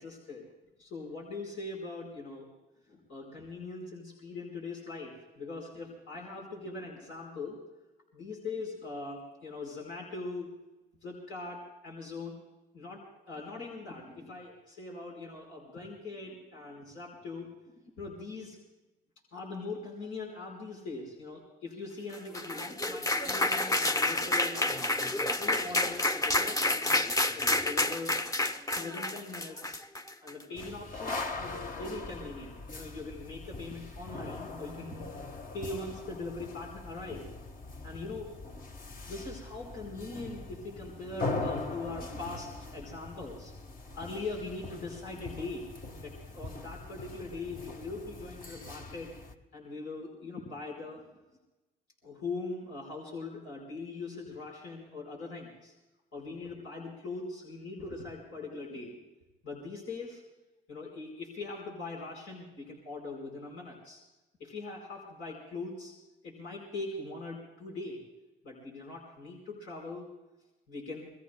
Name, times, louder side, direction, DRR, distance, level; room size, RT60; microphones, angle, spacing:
voice 1, 0.0-0.5 0.8-2.5 2.9-7.6 8.1-10.5 11.0-12.4 12.7-18.6 19.3-27.1 27.3-28.2 28.7-29.8 30.2-35.1 35.5-37.3 37.8-38.4 39.0-43.5 43.9-45.7 46.0-49.1 49.5-51.0 52.0-55.7 56.1-59.0 59.4-60.2 60.7-64.0 64.4-65.9 66.2-68.0 68.4-70.1 70.7-71.1, left 3 dB, 85° left, -2 dB, 4.6 m, -41 dB
sound 1, 22.1-30.4, left 2 dB, 15° left, 0.8 m, -29 dB
sound 2, 30.5-49.3, left 3 dB, 45° left, 1.4 m, -41 dB
27.5 x 21.0 x 2.2 m, 1.1 s
cardioid pair, 90°, 20 cm